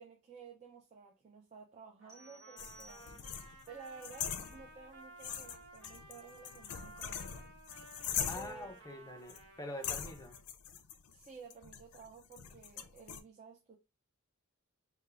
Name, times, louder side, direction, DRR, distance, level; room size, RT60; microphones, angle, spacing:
voice 1, 0.0-3.2 3.7-7.4 8.3-8.7 11.1-13.8, right 5 dB, 30° right, 0.5 m, -53 dB
Trumpet, 2.0-10.4, right 2 dB, 60° right, 1.0 m, -56 dB
sound 1, 2.1-3.6, right 2 dB, 10° right, 1.0 m, -59 dB
sound 2, 2.6-4.9 5.2-8.7 9.3-9.4 9.8-13.2, left 8 dB, 80° left, 0.4 m, -42 dB
voice 2, 8.3-10.4, left 1 dB, 15° left, 0.5 m, -45 dB
3.5 x 2.2 x 3.3 m
head